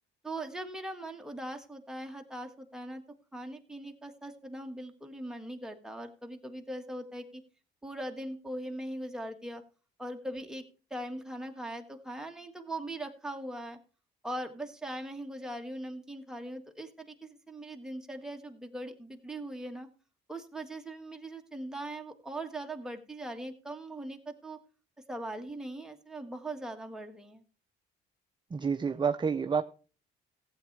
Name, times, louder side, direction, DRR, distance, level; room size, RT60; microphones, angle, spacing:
voice 1, 0.2-3.0 3.3-7.4 7.8-9.6 10.0-10.6 10.9-13.8 14.2-19.9 20.3-24.6 25.1-27.4, right 1 dB, 5° right, 3 dB, 1.6 m, -40 dB
voice 2, 28.5-29.6, right 6 dB, 25° right, 9 dB, 0.6 m, -29 dB
15.0 x 8.5 x 3.3 m, 0.37 s
cardioid pair, 85°, 19 cm